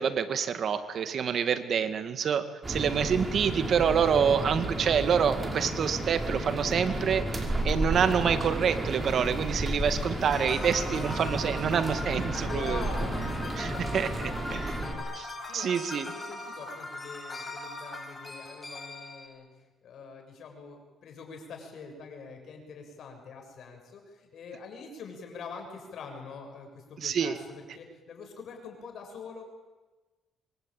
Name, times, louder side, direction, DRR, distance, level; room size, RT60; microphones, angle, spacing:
voice 1, 0.0-12.8 13.6-14.7 15.2-16.1 27.0-27.4, right 7 dB, 60° right, 10 dB, 2.1 m, -27 dB
sound 1, 2.6-14.9, right 1 dB, 25° right, 5.4 m, -32 dB
voice 2, 10.0-10.8 12.4-13.1 13.6-15.0 15.4-19.5 19.8-29.4, left 5 dB, 70° left, 4 dB, 7.3 m, -44 dB
sound 2, 10.3-19.3, left 2 dB, 20° left, 7.5 m, -40 dB
25.5 x 23.5 x 9.1 m, 1.2 s
cardioid pair, 90°, 0 cm